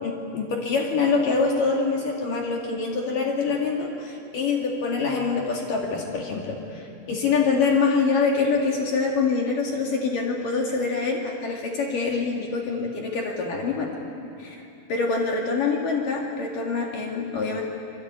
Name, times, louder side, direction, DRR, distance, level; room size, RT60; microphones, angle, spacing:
voice 1, 0.0-13.9 14.9-17.6, left 4 dB, 50° left, 0 dB, 3.1 m, -25 dB
26.0 x 22.0 x 9.4 m, 2.6 s
omnidirectional pair, 5.9 m